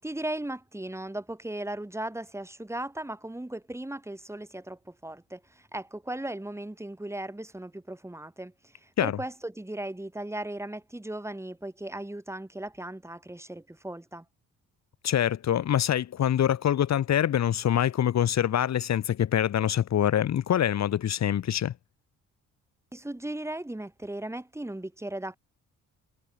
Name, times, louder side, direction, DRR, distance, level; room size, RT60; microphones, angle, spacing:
voice 1, 0.0-14.2 22.9-25.4, right 1 dB, 10° right, 6.4 m, -37 dB
voice 2, 15.0-21.7, left 10 dB, 60° left, 2.4 m, -25 dB
cardioid pair, 90°, 30 cm